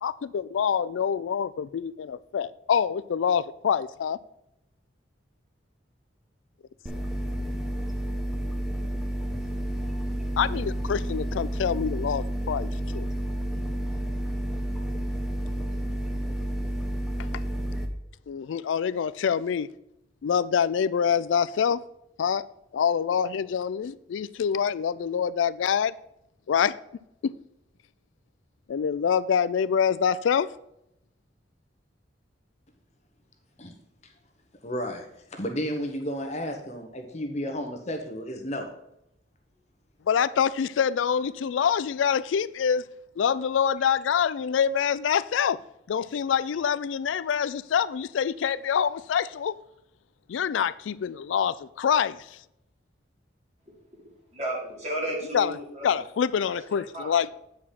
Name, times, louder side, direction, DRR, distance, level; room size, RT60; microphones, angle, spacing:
voice 1, 0.0-4.2 10.4-13.1 17.2-17.3 18.3-19.7 20.2-21.8 22.2-22.5 22.7-25.9 26.5-26.8 27.2-27.3 28.7-30.5 40.1-42.8 43.2-45.6 45.9-49.5 50.3-52.4 55.3-55.6 55.8-57.3, left 7 dB, 90° left, 0.4 m, -26 dB
sound 1, 6.9-17.9, equal, 5° right, 0.9 m, -30 dB
voice 2, 34.6-38.7, equal, 35° left, 1.1 m, -33 dB
voice 3, 54.3-56.0 56.4-56.6 56.9-57.3, right 1 dB, 40° right, 3.0 m, -33 dB
8.4 x 4.9 x 5.6 m
head